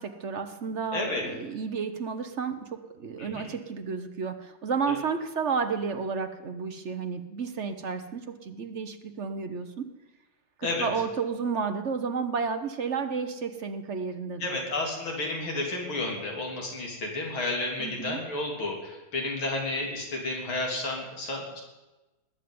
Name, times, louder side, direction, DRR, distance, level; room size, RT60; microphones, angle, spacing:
voice 1, 0.0-9.9 10.6-14.6 17.8-18.2, right 5 dB, 50° right, 8 dB, 0.9 m, -32 dB
voice 2, 0.9-1.2 3.2-3.5 4.9-5.0 10.6-10.9 14.4-21.6, left 2 dB, 85° left, 0 dB, 4.1 m, -31 dB
20.0 x 7.5 x 9.5 m, 1.1 s
omnidirectional pair, 2.2 m